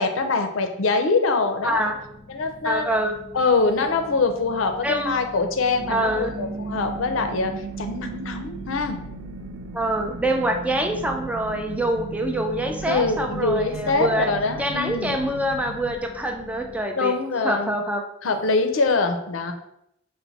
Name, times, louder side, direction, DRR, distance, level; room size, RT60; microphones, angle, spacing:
voice 1, 0.0-1.8 2.3-3.0 3.3-7.5 7.8-9.0 12.9-15.2 17.0-17.8 18.2-19.5, left 3 dB, 90° left, 6 dB, 0.5 m, -24 dB
sound 1, 1.6-16.8, left 1 dB, 45° left, 0.6 m, -45 dB
voice 2, 1.6-2.0 2.6-3.1 4.8-5.3 5.9-6.3 9.7-14.3 14.6-17.1 17.4-18.0, right 1 dB, 5° right, 3 dB, 0.4 m, -25 dB
sound 2, 5.8-16.0, right 4 dB, 70° right, 0.4 m, -36 dB
4.4 x 2.1 x 4.0 m, 0.78 s
head